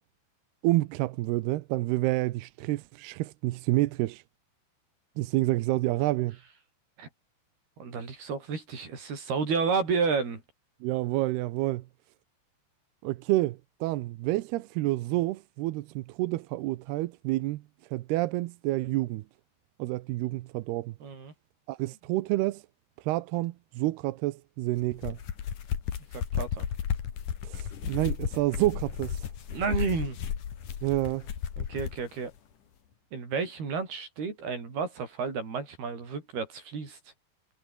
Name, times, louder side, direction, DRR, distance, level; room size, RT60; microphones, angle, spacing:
voice 1, 0.6-4.2 5.2-6.4 10.8-11.8 13.0-17.6 17.9-19.2 19.8-21.0 21.7-22.6 23.0-25.2 27.4-29.3 30.8-31.3, right 18 dB, 75° right, 2.6 m, -29 dB
voice 2, 7.8-10.4 21.0-21.3 26.1-26.7 29.5-30.2 31.6-32.3 33.1-37.0, right 5 dB, 60° right, 8.0 m, -31 dB
sound 1, 24.8-32.0, left 8 dB, 50° left, 3.5 m, -34 dB
omnidirectional pair, 5.1 m